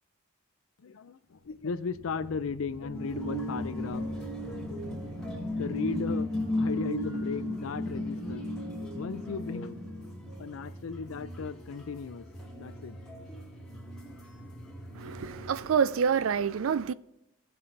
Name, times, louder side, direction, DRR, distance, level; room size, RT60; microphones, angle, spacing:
voice 1, 0.8-4.4 5.5-8.5 8.9-9.8 10.4-12.3 12.6-13.0, left 5 dB, 80° left, 0.5 m, -36 dB
sound 1, 1.7-10.9, left 1 dB, 25° right, 2.4 m, -35 dB
sound 2, 2.9-15.7, right 1 dB, ahead, 1.9 m, -46 dB
voice 2, 15.0-16.9, right 7 dB, 80° right, 0.4 m, -27 dB
15.5 x 5.5 x 3.3 m
head